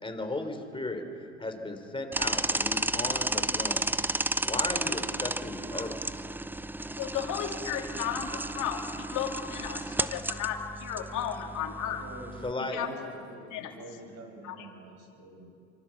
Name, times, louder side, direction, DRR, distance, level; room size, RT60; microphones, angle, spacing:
voice 1, 0.0-1.1 1.4-3.9 4.4-6.2 12.4-12.8, left 2 dB, 15° left, 6 dB, 3.8 m, -35 dB
sound 1, 2.1-12.5, right 2 dB, 5° right, 0.6 m, -33 dB
voice 2, 7.0-12.0 12.6-12.9 13.5-13.7 14.4-14.7, left 9 dB, 60° left, 2 dB, 3.1 m, -34 dB
voice 3, 11.9-12.4 12.6-15.5, right 1 dB, 50° right, 3 dB, 6.7 m, -45 dB
25.5 x 22.5 x 7.4 m, 2.6 s
hypercardioid pair, 75°, 34 cm